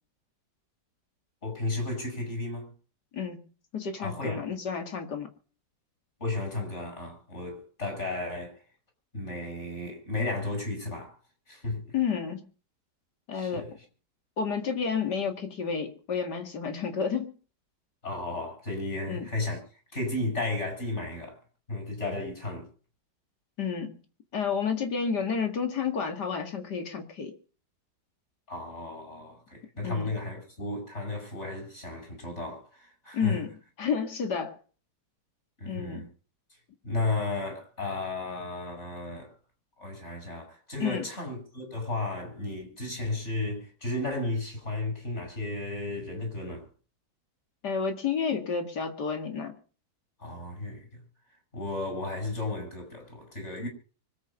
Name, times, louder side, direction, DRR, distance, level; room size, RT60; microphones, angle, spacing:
voice 1, 1.4-2.7 4.0-4.4 6.2-8.6 9.1-11.2 11.5-12.0 13.3-13.7 18.0-19.6 19.9-21.4 21.7-22.7 28.5-33.4 35.6-36.1 36.8-39.3 39.8-46.7 50.2-51.0 51.5-53.7, left 2 dB, 40° left, 6.2 m, -34 dB
voice 2, 3.7-5.3 11.9-12.4 13.3-13.7 14.4-17.3 19.1-19.3 23.6-24.0 24.3-27.3 29.8-30.1 33.1-33.5 33.8-34.5 35.6-36.0 40.8-41.1 47.6-49.6, left 6 dB, 70° left, 2.8 m, -30 dB
24.5 x 8.7 x 5.4 m
omnidirectional pair, 1.9 m